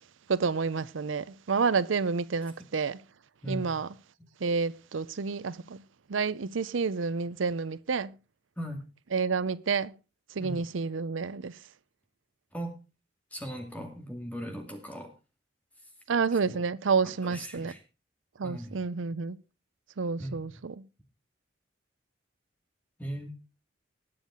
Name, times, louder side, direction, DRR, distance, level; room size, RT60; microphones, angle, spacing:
voice 1, 0.3-3.0 3.5-3.9 4.4-5.8 6.1-8.1 9.1-9.9 10.4-11.6 16.1-17.7 18.4-19.4 20.0-20.7, right 5 dB, 85° right, 0.6 m, -29 dB
voice 2, 3.4-3.8 8.6-8.8 10.4-10.6 12.5-12.8 13.3-15.1 16.5-16.6 17.0-17.8 18.4-18.8 20.2-20.6 23.0-23.3, equal, 10° left, 2.3 m, -38 dB
20.0 x 7.3 x 3.7 m
head